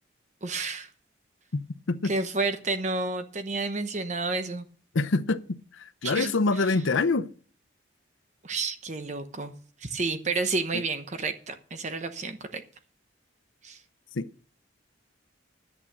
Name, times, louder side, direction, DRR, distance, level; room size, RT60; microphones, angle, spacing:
voice 1, 0.4-0.9 2.0-4.6 6.0-6.3 8.4-9.5 9.8-12.6 13.6-13.8, right 3 dB, 35° right, 0.9 m, -30 dB
voice 2, 4.9-7.3 10.7-10.8 14.1-14.3, left 3 dB, 80° left, 0.7 m, -26 dB
11.0 x 8.6 x 6.2 m
head